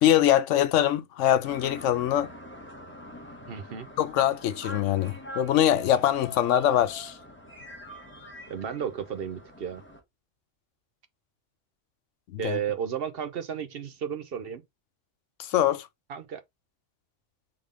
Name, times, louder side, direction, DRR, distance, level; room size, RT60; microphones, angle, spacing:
voice 1, 0.0-2.3 4.0-7.2 12.3-12.6 15.4-15.9, left 11 dB, 90° left, 1.0 m, -23 dB
sound 1, 1.4-10.0, left 1 dB, 10° left, 1.2 m, -44 dB
voice 2, 3.5-3.9 8.5-9.8 12.4-14.6 16.1-16.4, right 8 dB, 60° right, 0.8 m, -33 dB
3.7 x 3.5 x 3.7 m
omnidirectional pair, 1.2 m